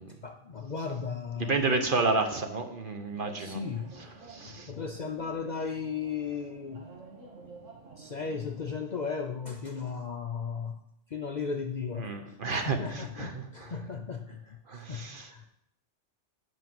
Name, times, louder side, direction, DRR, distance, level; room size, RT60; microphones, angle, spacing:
voice 1, 0.2-1.8 3.4-4.1 4.5-6.9 8.0-10.8 11.1-15.5, left 5 dB, 50° left, 4 dB, 0.6 m, -36 dB
voice 2, 1.4-3.6 4.3-4.7 12.0-13.7 14.7-15.5, right 3 dB, 50° right, 6 dB, 1.1 m, -31 dB
sound 1, 3.0-8.7, right 3 dB, 90° right, 2.0 m, -50 dB
8.2 x 5.2 x 7.7 m, 0.77 s
omnidirectional pair, 1.2 m